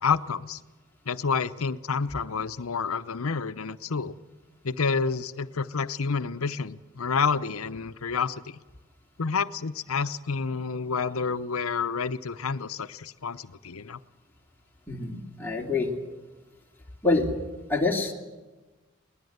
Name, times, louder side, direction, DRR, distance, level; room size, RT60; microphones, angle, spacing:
voice 1, 0.0-0.6 1.1-4.2 4.6-8.6 9.2-14.0, left 5 dB, 80° left, 12 dB, 0.8 m, -29 dB
voice 2, 14.9-15.9 17.0-17.3 17.7-18.1, left 3 dB, 10° left, -2 dB, 2.8 m, -26 dB
22.0 x 19.5 x 8.0 m, 1.2 s
head